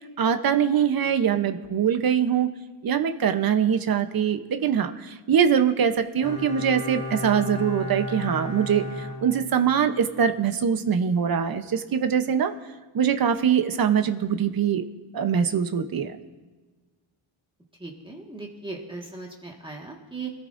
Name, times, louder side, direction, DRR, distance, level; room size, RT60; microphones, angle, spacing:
voice 1, 0.2-2.5 2.8-12.5 12.9-14.8 15.1-16.2, right 8 dB, 50° right, 8 dB, 0.9 m, -23 dB
Bowed string instrument, 6.2-10.0 10.3-10.4, left 2 dB, 40° left, 3.3 m, -34 dB
voice 2, 17.8-20.3, right 3 dB, 10° right, -1 dB, 1.7 m, -38 dB
25.5 x 13.5 x 2.6 m, 1.3 s
wide cardioid pair, 155°, 47 cm